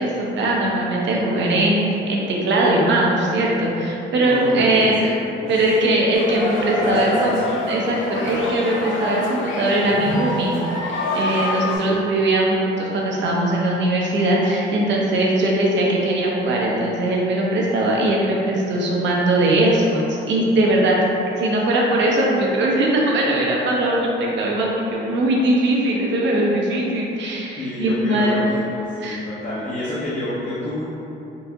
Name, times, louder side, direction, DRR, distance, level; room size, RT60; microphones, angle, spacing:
voice 1, 0.0-5.1 5.5-7.4 7.7-10.6 11.1-21.0 21.4-28.4 29.0-29.2, right 1 dB, 65° right, -3 dB, 0.7 m, -20 dB
voice 2, 4.2-4.9 5.4-5.6 6.8-7.3 11.7-12.0 27.6-30.8, left 1 dB, 35° left, -10 dB, 0.7 m, -28 dB
sound 1, 6.1-11.8, left 2 dB, 75° left, 0.5 m, -26 dB
3.9 x 2.4 x 2.7 m, 2.9 s
cardioid pair, 90°, 20 cm